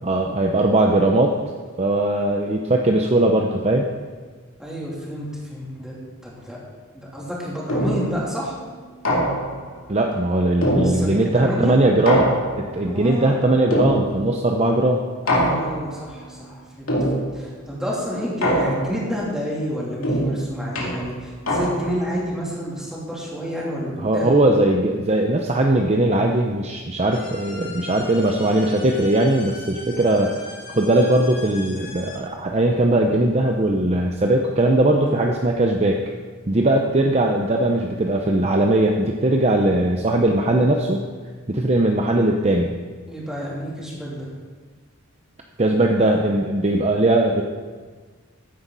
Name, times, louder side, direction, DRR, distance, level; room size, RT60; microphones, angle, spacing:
voice 1, 0.0-1.3 1.8-3.9 9.9-12.3 12.6-15.0 24.0-30.4 30.7-36.0 36.5-41.0 41.5-42.7 45.6-47.4, right 1 dB, 30° right, 2 dB, 0.7 m, -19 dB
voice 2, 4.6-5.9 6.2-6.6 6.9-8.5 10.8-11.7 12.8-13.4 15.2-16.9 17.2-24.4 43.1-44.3, equal, 5° right, -6 dB, 3.1 m, -29 dB
sound 1, 7.7-8.2 9.1-9.7 10.6-11.4 12.1-12.9 13.7-14.4 15.3-16.0 16.9-17.5 18.4-19.1 20.0-22.1, equal, 75° left, 2.5 m, -23 dB
sound 2, 27.1-32.2, left 2 dB, 45° left, 3.1 m, -40 dB
14.5 x 9.7 x 4.0 m, 1.5 s
head